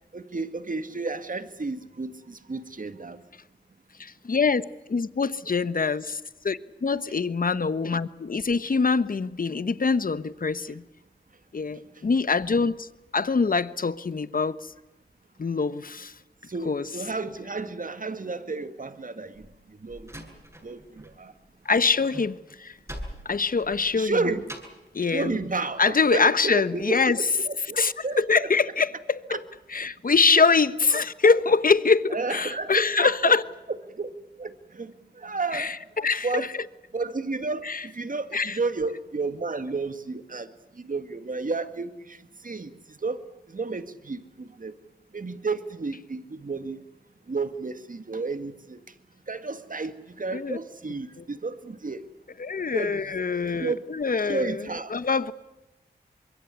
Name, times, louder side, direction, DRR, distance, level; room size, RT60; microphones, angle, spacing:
voice 1, 0.1-3.2 16.5-19.5 19.8-20.1 20.6-21.3 23.9-24.5 25.1-27.8 28.0-28.5 29.3-29.4 30.9-31.3 32.1-33.3 34.0-34.1 34.4-35.7 36.2-36.5 36.9-40.5 40.8-42.2 42.4-43.2 43.5-44.7 45.1-46.8 47.3-48.8 49.3-52.0 52.7-53.1 53.6-53.8 54.3-54.9, right 3 dB, 50° right, 2.1 m, -32 dB
voice 2, 4.0-10.8 11.5-12.9 13.1-14.7 15.4-16.1 16.6-16.9 21.6-22.8 23.2-24.3 24.9-25.4 25.8-27.3 27.7-29.4 29.7-33.4 35.5-36.5 37.6-37.9 38.3-38.6 50.3-50.6 51.2-51.3 52.4-55.3, left 4 dB, 55° left, 1.2 m, -24 dB
Slam, 19.3-21.2 21.4-24.9, equal, 15° right, 7.9 m, -43 dB
25.0 x 22.5 x 8.4 m
cardioid pair, 45°, 18 cm